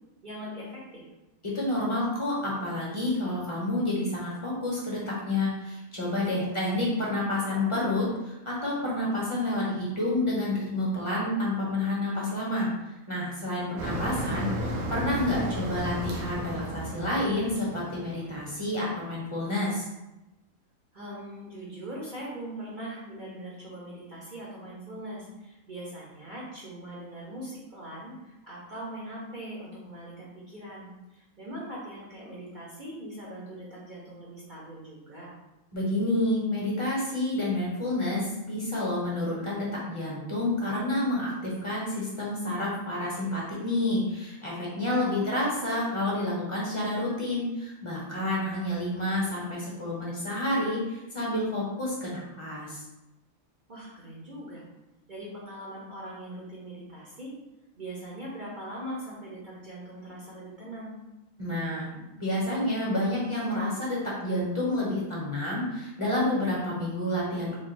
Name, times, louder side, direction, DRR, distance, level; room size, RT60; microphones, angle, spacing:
voice 1, 0.2-1.1 6.4-6.5 6.8-7.8 14.4-15.0 20.9-35.3 45.0-45.4 46.4-46.7 53.7-54.6 55.1-57.3 57.8-60.9, right 1 dB, 45° right, -6 dB, 0.7 m, -41 dB
voice 2, 1.4-12.7 13.1-14.5 14.9-19.9 35.7-52.8 61.4-61.9 62.2-67.6, left 1 dB, 25° left, -5 dB, 0.9 m, -29 dB
Motor vehicle (road), 13.8-18.7, right 1 dB, 90° right, 1.1 m, -34 dB
3.1 x 2.4 x 4.3 m, 0.97 s
omnidirectional pair, 1.4 m